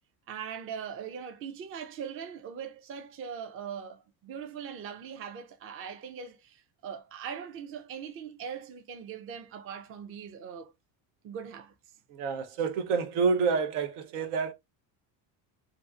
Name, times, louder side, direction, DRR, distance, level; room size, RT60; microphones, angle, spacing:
voice 1, 0.3-10.7 11.2-11.7, right 7 dB, 30° right, 0.4 m, -41 dB
voice 2, 12.1-14.5, right 5 dB, 85° right, 0.8 m, -28 dB
2.7 x 2.4 x 2.3 m
supercardioid pair, 95°, 47 cm